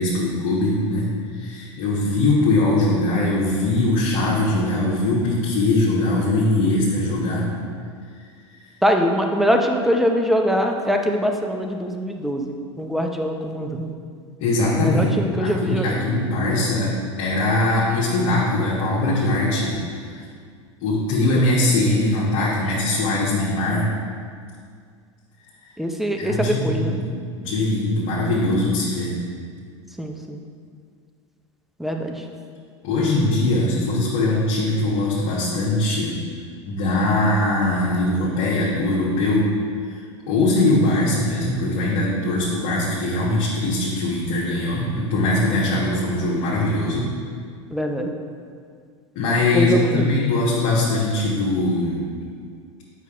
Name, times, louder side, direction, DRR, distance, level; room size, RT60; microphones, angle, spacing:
voice 1, 0.0-7.5 14.4-20.2 20.8-23.9 25.6-25.7 26.2-27.1 27.4-29.1 32.8-36.1 36.6-39.5 39.8-40.0 40.3-47.1 49.1-52.0, left 2 dB, 60° left, -6 dB, 1.2 m, -21 dB
voice 2, 8.8-13.9 14.8-16.0 21.4-21.5 25.8-27.0 30.0-30.4 31.8-32.2 47.7-48.1 49.5-50.1, equal, ahead, 3 dB, 0.6 m, -23 dB
8.0 x 5.8 x 2.5 m, 2.1 s
hypercardioid pair, 90°, 16 cm